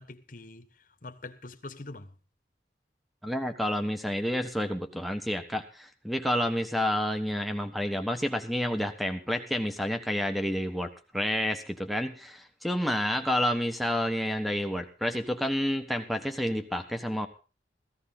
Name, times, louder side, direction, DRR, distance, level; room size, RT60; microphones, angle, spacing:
voice 1, 0.0-2.1, left 2 dB, 50° left, 1.3 m, -44 dB
voice 2, 3.2-17.3, equal, ahead, 1.3 m, -29 dB
15.5 x 14.5 x 4.0 m
head